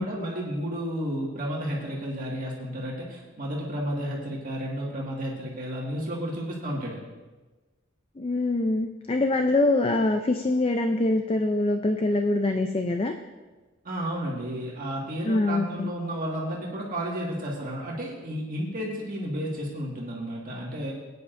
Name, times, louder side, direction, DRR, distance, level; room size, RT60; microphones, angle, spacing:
voice 1, 0.0-7.0 13.8-20.9, equal, 45° right, -3 dB, 1.8 m, -32 dB
voice 2, 8.2-13.1 15.2-15.9, left 2 dB, 30° left, 6 dB, 0.5 m, -24 dB
18.0 x 9.6 x 2.6 m, 1.3 s
head